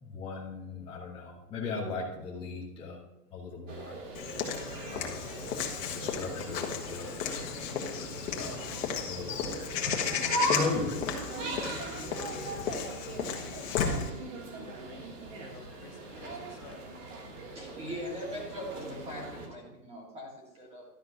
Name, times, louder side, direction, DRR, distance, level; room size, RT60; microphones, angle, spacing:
voice 1, 0.0-3.0 3.3-4.0 4.9-5.4 5.8-7.1 8.4-8.7 9.1-10.0 10.4-11.1, left 4 dB, 10° left, -5 dB, 1.2 m, -37 dB
sound 1, 3.7-19.5, right 2 dB, 55° right, 2.5 m, -39 dB
Walk footsteps / Bird vocalization bird call bird song, 4.1-14.1, left 7 dB, 55° left, 1.7 m, -34 dB
voice 2, 14.4-15.1 15.5-16.8, left 6 dB, 75° left, 3 dB, 2.0 m, -55 dB
voice 3, 17.5-20.8, equal, 15° right, -2 dB, 1.9 m, -41 dB
12.0 x 4.6 x 5.7 m, 1.0 s
hypercardioid pair, 160°, 47 cm